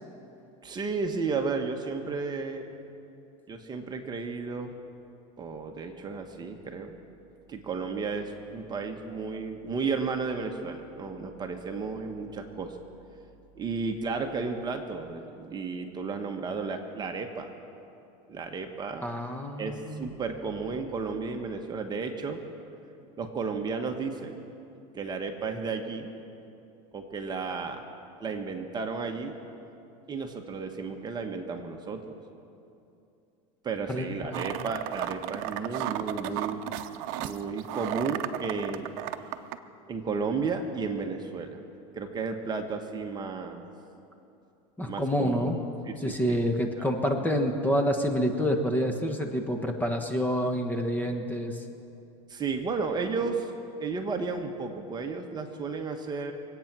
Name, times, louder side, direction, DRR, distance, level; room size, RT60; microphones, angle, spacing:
voice 1, 0.6-2.7 3.5-4.7 5.4-7.0 7.5-12.8 13.5-17.5 18.3-19.1 19.6-22.4 23.2-24.4 24.9-26.1 26.9-27.8 28.2-29.3 30.1-32.2 33.6-36.7 37.2-39.0 39.9-41.6 41.9-43.7 44.8-46.9 52.3-53.5 53.8-56.3, right 4 dB, 25° right, 4 dB, 1.3 m, -33 dB
voice 2, 19.0-20.1 33.9-34.4 44.8-45.6 46.0-51.6, equal, 10° left, 4 dB, 1.3 m, -28 dB
sound 1, 34.3-39.6, right 13 dB, 60° right, 0.7 m, -34 dB
24.5 x 8.8 x 6.1 m, 2.7 s
supercardioid pair, 120°, 17 cm